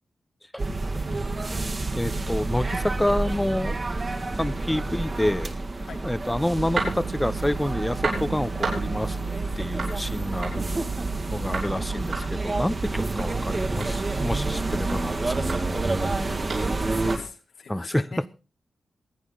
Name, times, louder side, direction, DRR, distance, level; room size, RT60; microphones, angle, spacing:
sound 1, 0.6-17.2, right 2 dB, 45° right, 2.2 m, -29 dB
voice 1, 2.0-3.8 4.4-5.6 6.0-9.2 9.6-10.8 11.3-15.8 17.7-18.2, left 1 dB, 10° left, 17 dB, 0.7 m, -28 dB
sound 2, 6.5-17.2, right 4 dB, 80° right, 7.9 m, -32 dB
voice 2, 16.2-18.3, left 5 dB, 80° left, 3 dB, 2.7 m, -43 dB
25.5 x 9.7 x 4.0 m, 0.34 s
cardioid pair, 50°, 0 cm